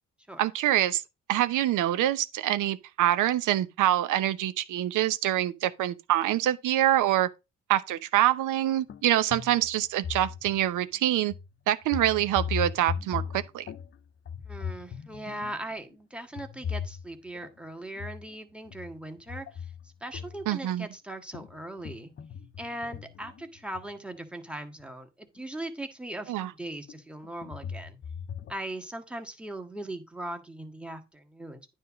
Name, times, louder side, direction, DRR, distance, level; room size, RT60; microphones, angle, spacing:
voice 1, 0.4-1.0 1.3-7.3 7.7-11.3 11.7-13.7 20.5-20.9 26.3-26.5, right 13 dB, 85° right, 0.9 m, -25 dB
sound 1, 8.9-9.0 9.3-10.8 11.3-11.5 11.8-14.0 14.3-15.7 16.4-17.5 18.0-18.3 18.7-20.7 21.3-24.0 24.8-24.9 25.4-25.5 26.9-28.5, left 7 dB, 40° left, 0.6 m, -38 dB
voice 2, 14.4-19.5 20.0-22.1 22.6-27.9 28.5-31.7, right 1 dB, 5° right, 1.6 m, -39 dB
9.6 x 3.6 x 6.2 m
cardioid pair, 90°, 30 cm